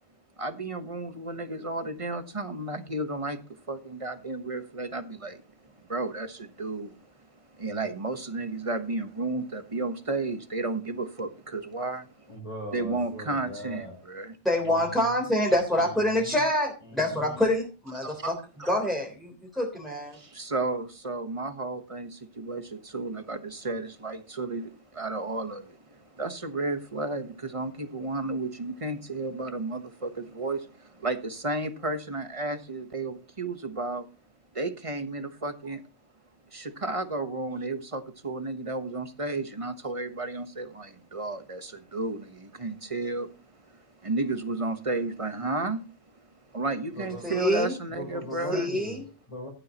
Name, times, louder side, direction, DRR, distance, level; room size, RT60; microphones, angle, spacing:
voice 1, 0.4-7.2 7.5-12.4 12.7-14.3 18.0-18.3 20.1-34.1 34.5-35.8 36.5-48.7, right 2 dB, 30° right, 1.2 m, -33 dB
voice 2, 12.3-14.0 14.6-15.3 15.7-16.5 16.8-17.5 46.9-47.4 47.9-49.5, left 1 dB, 30° left, 5.4 m, -41 dB
voice 3, 14.4-18.3 18.6-20.2 47.2-47.7 48.5-49.0, left 1 dB, ahead, 3.7 m, -26 dB
14.0 x 11.5 x 3.0 m
omnidirectional pair, 1.1 m